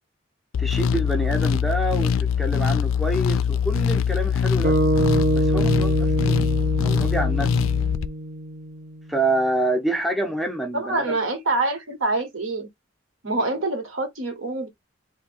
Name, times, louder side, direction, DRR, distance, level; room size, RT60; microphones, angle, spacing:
sound 1, 0.5-8.1, left 7 dB, 75° left, 0.3 m, -22 dB
voice 1, 0.6-4.8 5.4-6.4 6.8-7.6 9.1-11.2, right 1 dB, ahead, 0.5 m, -27 dB
sound 2, 4.6-9.0, right 2 dB, 40° right, 0.7 m, -25 dB
voice 2, 10.7-12.7 13.2-14.7, right 2 dB, 80° right, 1.3 m, -25 dB
2.7 x 2.5 x 4.2 m
head